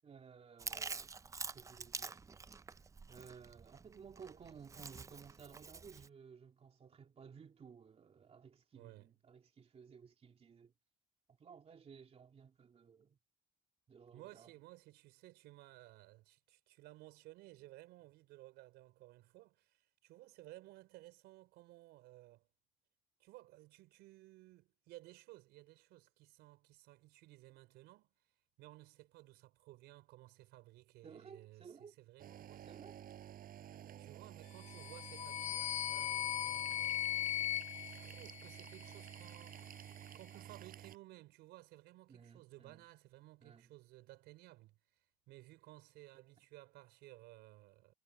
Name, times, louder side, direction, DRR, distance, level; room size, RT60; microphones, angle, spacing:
voice 1, 0.0-1.1 1.5-2.2 3.1-10.7 11.4-13.2 13.9-14.5 31.0-31.9 32.7-33.0 42.1-42.8 43.4-43.7, right 6 dB, 35° right, 2.8 m, -57 dB
Chewing mastication, 0.6-6.1, right 4 dB, 20° right, 0.4 m, -47 dB
voice 2, 8.7-9.1 14.1-22.5 23.2-28.1 28.6-32.7 34.0-37.5 37.8-39.9 40.1-47.9, right 18 dB, 90° right, 4.7 m, -58 dB
sound 1, 32.2-41.0, right 10 dB, 55° right, 7.9 m, -52 dB
sound 2, 34.6-38.9, left 13 dB, 45° left, 0.5 m, -39 dB
cardioid pair, 110°, 17 cm